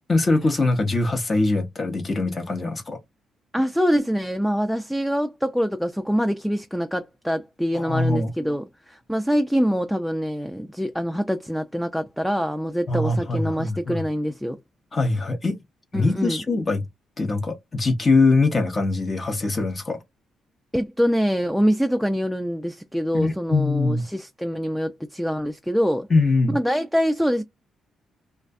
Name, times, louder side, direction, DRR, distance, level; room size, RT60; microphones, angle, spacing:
voice 1, 0.1-3.0 7.7-8.3 12.9-14.0 14.9-15.6 15.9-16.8 17.2-20.0 23.1-24.0 26.1-26.6, left 3 dB, 35° left, 0.7 m, -22 dB
voice 2, 3.5-14.6 15.9-16.4 20.7-26.1 26.5-27.4, equal, ahead, 0.3 m, -24 dB
2.4 x 2.2 x 2.5 m
cardioid pair, 90°, 0 cm